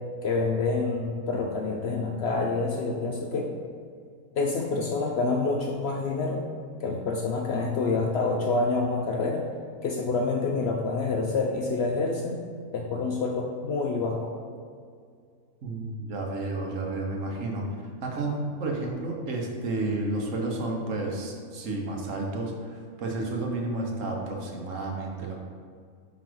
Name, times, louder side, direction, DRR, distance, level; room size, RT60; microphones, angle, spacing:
voice 1, 0.2-3.5 4.4-6.5 6.8-9.5 9.8-12.4 12.7-14.3, left 3 dB, 70° left, 1 dB, 0.6 m, -27 dB
voice 2, 15.6-17.7 18.0-25.4, right 2 dB, 60° right, 0 dB, 1.2 m, -31 dB
5.6 x 4.1 x 4.6 m, 2.1 s
omnidirectional pair, 1.6 m